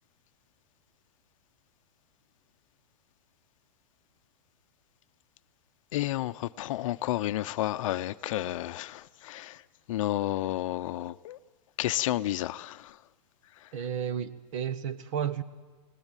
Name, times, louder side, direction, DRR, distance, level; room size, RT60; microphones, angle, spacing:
voice 1, 5.9-9.6 9.9-11.4 11.8-12.9, left 14 dB, 55° left, 0.7 m, -31 dB
voice 2, 13.7-15.4, right 8 dB, 55° right, 1.4 m, -32 dB
26.5 x 19.5 x 9.0 m
hypercardioid pair, 145°, 20 cm